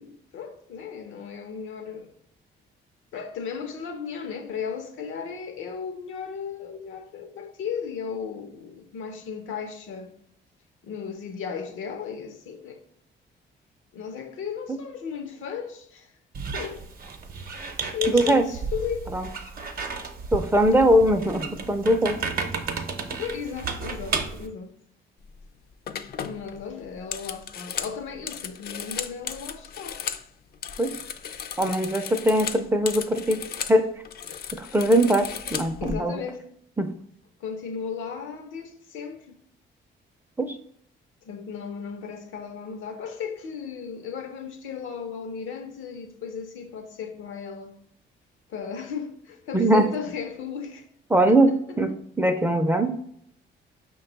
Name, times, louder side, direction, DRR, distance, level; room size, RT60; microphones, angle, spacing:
voice 1, 0.0-2.1 3.1-10.1 10.8-12.8 13.9-16.1 16.5-16.9 17.4-17.7 17.9-19.1 23.2-24.7 26.2-30.0 35.8-36.4 37.4-39.4 41.2-47.7 48.5-50.9 51.3-52.0, left 6 dB, 85° left, 0.7 m, -35 dB
Squeak, 16.3-24.5, right 4 dB, 50° right, 0.7 m, -33 dB
voice 2, 18.1-18.4 19.1-19.3 20.3-22.2 30.8-30.9 31.6-33.4 33.7-33.9 34.5-36.2 36.8-36.9 40.4-40.6 49.5-49.9 51.1-52.9, right 1 dB, 10° right, 0.4 m, -21 dB
sound 1, 25.2-25.4 25.9-30.3 30.5-33.8 34.0-35.9, left 8 dB, 50° left, 0.4 m, -35 dB
5.3 x 2.3 x 3.9 m
cardioid pair, 90°, 20 cm